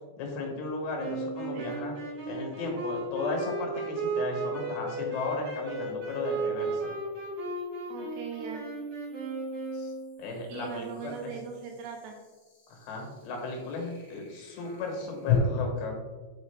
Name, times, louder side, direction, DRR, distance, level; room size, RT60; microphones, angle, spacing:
voice 1, 0.2-1.9 2.3-6.9 9.7-9.9 10.2-11.1 12.7-15.9, left 3 dB, 75° left, 1 dB, 3.4 m, -35 dB
sound 1, 1.0-10.2, right 2 dB, 45° right, 2.7 m, -34 dB
sound 2, 1.7-1.8 5.2-15.4, left 15 dB, 50° left, 1.9 m, -40 dB
voice 2, 7.9-8.7 10.5-12.2, right 6 dB, 80° right, 3 dB, 2.7 m, -40 dB
6.1 x 5.5 x 3.3 m, 1.3 s
omnidirectional pair, 5.2 m